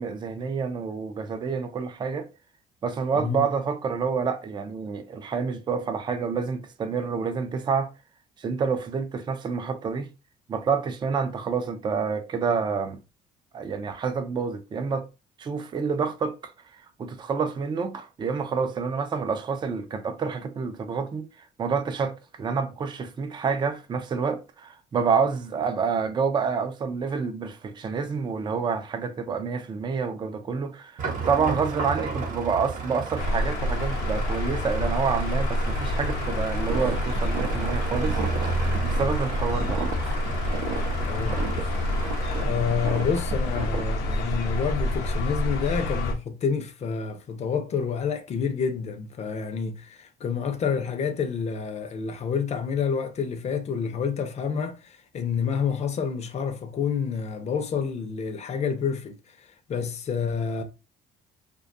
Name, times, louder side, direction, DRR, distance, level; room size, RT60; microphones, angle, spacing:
voice 1, 0.0-2.3 2.8-7.9 8.4-10.1 10.5-13.0 13.5-15.0 15.4-16.5 17.0-21.3 21.6-38.2 38.8-39.9 41.3-41.4, right 5 dB, 25° right, 0.4 m, -28 dB
voice 2, 3.1-3.5 31.0-31.6 41.1-41.4 42.4-60.6, left 6 dB, 40° left, 0.5 m, -29 dB
sound 1, 31.0-42.4, right 4 dB, 50° right, 0.8 m, -34 dB
sound 2, 33.2-46.1, left 1 dB, 80° left, 0.6 m, -28 dB
sound 3, 36.7-43.8, right 5 dB, 80° right, 0.6 m, -35 dB
2.5 x 2.2 x 2.5 m
cardioid pair, 110°, 17 cm